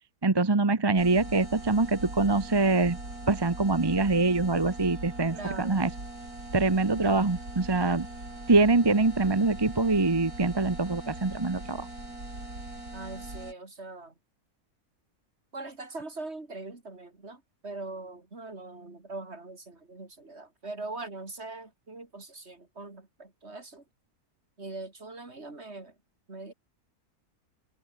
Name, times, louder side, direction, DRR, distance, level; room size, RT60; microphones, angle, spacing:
voice 1, 0.2-3.0 3.3-5.9 6.5-8.1 8.5-11.9, right 3 dB, 20° right, 0.8 m, -24 dB
sound 1, 1.0-13.5, right 2 dB, 70° right, 7.6 m, -41 dB
voice 2, 5.3-5.8 12.9-14.1 15.5-23.8 24.6-25.9 26.3-26.5, right 2 dB, 45° right, 3.7 m, -41 dB
omnidirectional pair, 1.6 m